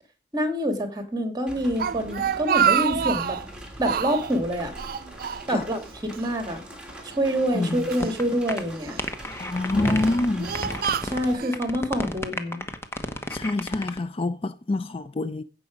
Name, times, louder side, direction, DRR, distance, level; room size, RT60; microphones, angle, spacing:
voice 1, 0.3-3.4 3.8-4.7 5.5-6.6 7.2-9.0 11.0-12.7, equal, 25° right, 2.2 m, -26 dB
sound 1, 1.5-11.4, equal, 5° right, 2.9 m, -38 dB
Speech, 1.6-3.5 3.8-4.4 4.8-5.9 6.1-6.3 7.1-8.1 8.8-9.2 9.9-11.6, right 8 dB, 55° right, 0.5 m, -27 dB
voice 2, 7.5-7.9 9.4-10.5 13.3-15.4, left 2 dB, 35° left, 0.5 m, -26 dB
sound 2, 8.0-8.2 8.5-8.6 9.0-10.3 10.5-11.3 11.5-14.0, left 1 dB, 15° left, 1.1 m, -31 dB
16.0 x 6.1 x 5.1 m
head